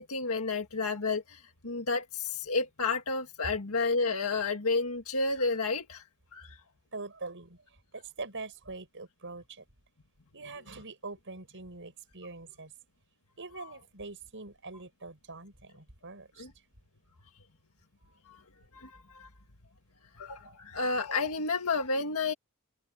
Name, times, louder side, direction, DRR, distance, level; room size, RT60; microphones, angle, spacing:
voice 1, 0.0-1.4 1.6-6.0 6.3-6.5 18.7-19.3 20.2-22.3, left 3 dB, 75° left, 1.9 m, -31 dB
voice 2, 6.9-9.6 10.3-12.7 13.4-16.5, right 3 dB, 60° right, 7.4 m, -44 dB
head